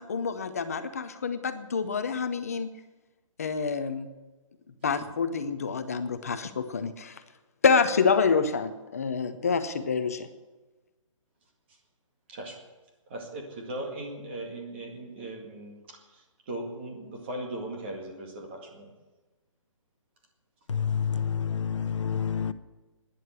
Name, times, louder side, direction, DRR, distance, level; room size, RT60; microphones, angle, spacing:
voice 1, 0.0-2.7 3.4-4.1 4.8-7.2 7.6-10.3, left 5 dB, 30° left, 0.7 m, -27 dB
voice 2, 13.1-18.9, right 1 dB, 20° right, 2.1 m, -38 dB
voice 3, 20.7-22.5, left 7 dB, 65° left, 0.9 m, -28 dB
12.5 x 10.0 x 9.6 m
hypercardioid pair, 180°, 17 cm